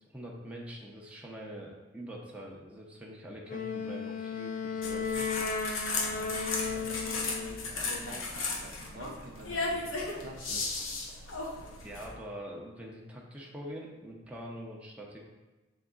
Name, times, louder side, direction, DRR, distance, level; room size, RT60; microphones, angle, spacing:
voice 1, 0.1-5.3 11.6-15.2, right 1 dB, 5° right, -3 dB, 0.7 m, -44 dB
Wind instrument woodwind instrument, 3.5-7.7, left 5 dB, 45° left, 0.5 m, -35 dB
sound 1, 4.8-12.1, left 3 dB, 90° left, 1.0 m, -35 dB
voice 2, 6.0-10.7, right 1 dB, 50° right, 1 dB, 0.7 m, -49 dB
7.1 x 3.5 x 3.8 m, 1.2 s
head